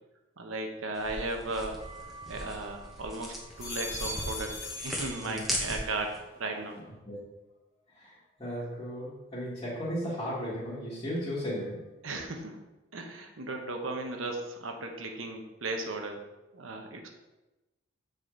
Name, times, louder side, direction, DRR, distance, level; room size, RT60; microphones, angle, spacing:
voice 1, 0.4-1.8 2.1-4.5 4.8-6.8 12.0-12.6 12.9-16.2 16.5-17.1, right 2 dB, 80° right, 3 dB, 1.1 m, -36 dB
sound 1, 0.9-6.2, equal, ahead, 1.1 m, -38 dB
sound 2, 1.8-2.9 3.4-5.8 6.2-6.8, left 2 dB, 70° left, 1.5 m, -41 dB
voice 2, 5.2-5.6 7.1-7.2 7.9-8.1 8.4-11.9, equal, 25° left, -10 dB, 1.7 m, -35 dB
7.6 x 5.1 x 3.9 m, 1.1 s
head